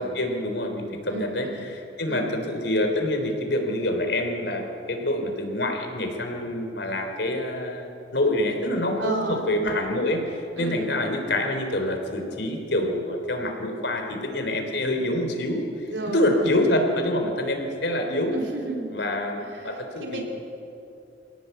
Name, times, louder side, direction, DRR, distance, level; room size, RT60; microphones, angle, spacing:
voice 1, 0.0-15.6 16.1-18.3 18.9-20.2, left 1 dB, 70° left, 4 dB, 3.7 m, -26 dB
voice 2, 1.1-1.6 2.0-2.3 9.0-9.7 10.6-10.9 15.9-16.5 18.3-19.0 19.4-19.7 20.0-20.2, right 2 dB, 85° right, 1 dB, 4.0 m, -33 dB
26.0 x 17.5 x 8.2 m, 2.8 s
head